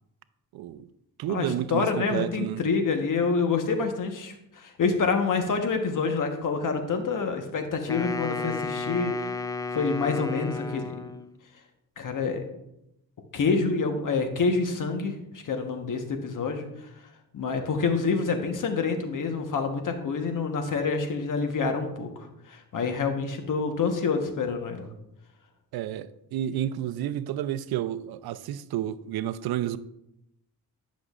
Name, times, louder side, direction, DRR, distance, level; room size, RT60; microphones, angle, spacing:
voice 1, 0.5-0.9 1.2-2.6 25.7-29.8, right 11 dB, 80° right, 0.5 m, -31 dB
voice 2, 1.3-9.3 9.7-11.0 12.0-12.4 13.3-16.9 17.3-24.9, left 4 dB, 55° left, 1.1 m, -27 dB
Wind instrument woodwind instrument, 7.9-11.4, left 3 dB, 10° left, 0.3 m, -33 dB
10.0 x 6.1 x 2.4 m
cardioid pair, 85°, 37 cm